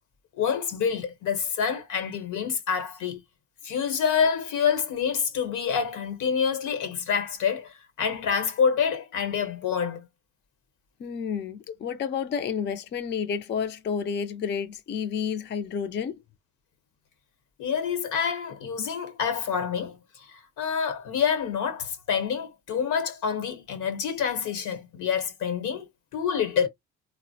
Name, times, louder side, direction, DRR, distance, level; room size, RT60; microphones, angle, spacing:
voice 1, 0.4-3.2 3.6-10.1 17.6-26.7, left 7 dB, 80° left, 1.0 m, -27 dB
voice 2, 11.0-16.2, left 7 dB, 40° left, 0.4 m, -30 dB
3.6 x 2.0 x 2.6 m
cardioid pair, 90°, 30 cm